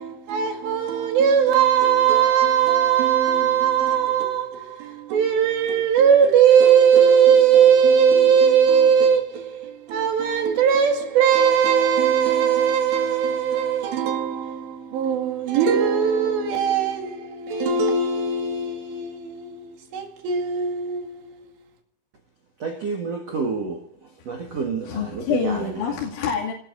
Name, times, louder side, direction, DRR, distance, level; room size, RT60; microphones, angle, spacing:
voice 1, 0.0-21.5, right 7 dB, 65° right, 4.2 m, -19 dB
voice 2, 22.6-23.8 24.2-25.6, right 4 dB, 85° right, 1.4 m, -29 dB
voice 3, 24.4-26.5, left 6 dB, 70° left, 4.7 m, -27 dB
28.0 x 19.5 x 2.7 m
omnidirectional pair, 5.7 m